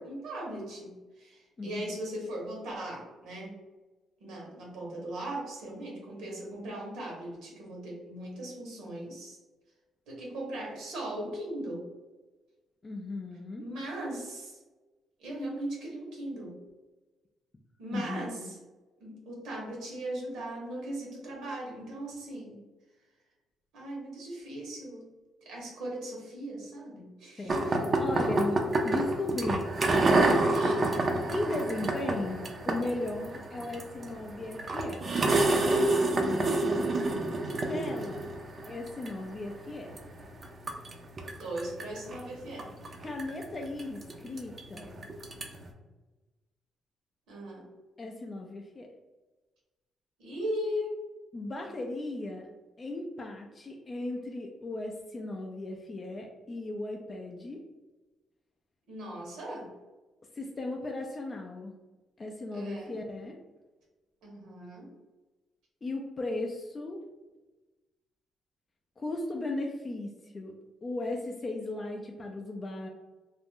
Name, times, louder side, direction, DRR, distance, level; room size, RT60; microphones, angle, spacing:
voice 1, 0.0-3.5 4.2-9.4 10.1-11.8 13.6-14.6 15.2-16.5 17.8-18.4 19.0-22.5 23.7-25.0 25.4-27.7 30.5-30.9 35.9-36.1 41.4-42.7 47.3-47.7 50.2-51.0 58.9-59.7 62.5-62.9 64.2-64.9, right 1 dB, 85° right, -3 dB, 1.0 m, -38 dB
voice 2, 1.6-2.0 12.8-13.7 17.9-18.5 27.4-30.1 31.3-35.0 37.7-38.3 38.7-40.0 43.0-45.1 48.0-48.9 51.3-52.5 52.8-57.6 60.3-61.8 62.2-63.4 65.8-67.0 69.0-70.5 70.8-72.9, left 2 dB, 30° left, 1 dB, 0.3 m, -36 dB
sound 1, 27.5-45.7, right 2 dB, 40° right, 0.4 m, -29 dB
2.4 x 2.0 x 3.5 m, 1.2 s
cardioid pair, 90°, 0 cm